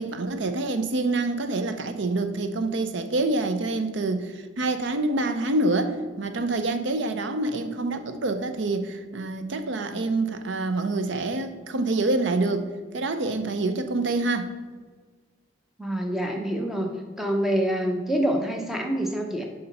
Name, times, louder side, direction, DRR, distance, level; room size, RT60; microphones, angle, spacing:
voice 1, 0.0-12.7 12.9-14.5, right 2 dB, 70° right, 9 dB, 0.6 m, -26 dB
voice 2, 15.8-16.9 17.2-19.5, right 1 dB, ahead, 2 dB, 0.8 m, -26 dB
6.9 x 5.2 x 5.3 m, 1.4 s
head